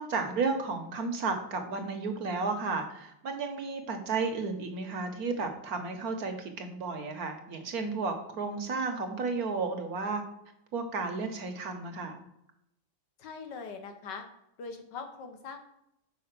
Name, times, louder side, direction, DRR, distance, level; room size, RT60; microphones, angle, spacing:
voice 1, 0.0-10.2 10.7-12.2, right 4 dB, 55° right, 5 dB, 1.3 m, -33 dB
voice 2, 13.2-14.2 14.6-15.6, left 5 dB, 65° left, 6 dB, 1.7 m, -41 dB
5.7 x 5.1 x 6.7 m, 0.81 s
omnidirectional pair, 2.0 m